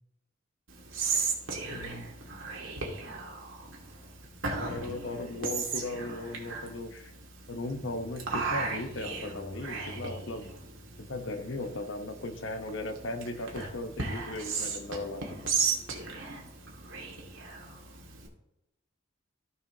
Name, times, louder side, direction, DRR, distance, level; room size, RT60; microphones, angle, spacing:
Whispering, 0.7-18.3, right 4 dB, 80° right, 1.9 m, -36 dB
voice 1, 1.7-2.1 4.5-7.1 7.5-10.5 11.1-15.5, left 2 dB, 70° left, 8 dB, 0.9 m, -37 dB
16.0 x 5.5 x 2.8 m, 0.87 s
head